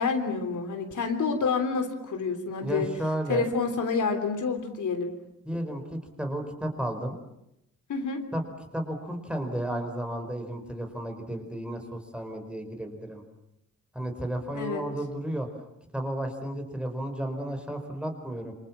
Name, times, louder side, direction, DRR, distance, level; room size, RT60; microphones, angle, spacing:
voice 1, 0.0-2.9 3.3-5.1 7.9-8.2 14.5-14.8, left 4 dB, 70° left, 6 dB, 3.4 m, -28 dB
voice 2, 2.6-3.5 5.4-7.2 8.3-8.4 8.7-13.2 13.9-15.5 15.9-18.5, right 1 dB, 5° right, 4 dB, 4.8 m, -33 dB
28.0 x 27.0 x 7.4 m, 0.82 s
wide cardioid pair, 135°, 31 cm